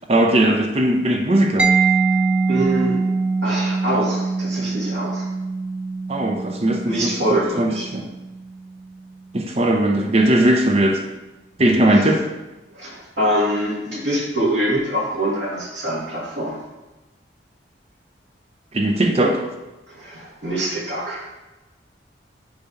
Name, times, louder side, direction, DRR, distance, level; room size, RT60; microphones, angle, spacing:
voice 1, 0.1-1.7 6.1-8.1 9.3-11.0 11.6-12.2 18.7-19.4, right 1 dB, 35° right, 2 dB, 0.7 m, -18 dB
Mallet percussion, 1.6-9.1, right 4 dB, 5° right, 0.3 m, -23 dB
voice 2, 2.5-3.0 3.4-5.2 6.9-7.9 12.7-16.6 19.9-21.2, right 1 dB, 80° right, -6 dB, 2.3 m, -24 dB
7.0 x 3.5 x 5.4 m, 1.1 s
head